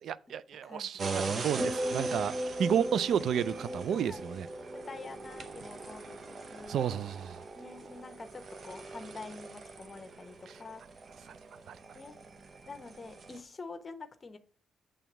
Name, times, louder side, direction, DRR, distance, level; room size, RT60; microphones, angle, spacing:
voice 1, 0.0-4.5 6.7-7.4 11.3-11.4 11.7-11.8, right 8 dB, 75° right, 0.3 m, -31 dB
voice 2, 0.6-1.4 3.9-6.8 7.5-10.8 11.9-12.2 12.7-14.4, left 3 dB, 35° left, 0.9 m, -47 dB
sound 1, 1.0-13.4, right 4 dB, 50° right, 0.8 m, -42 dB
sound 2, 1.6-6.0 6.3-6.7, equal, 20° right, 1.0 m, -38 dB
7.1 x 3.3 x 6.1 m
cardioid pair, 75°, 0 cm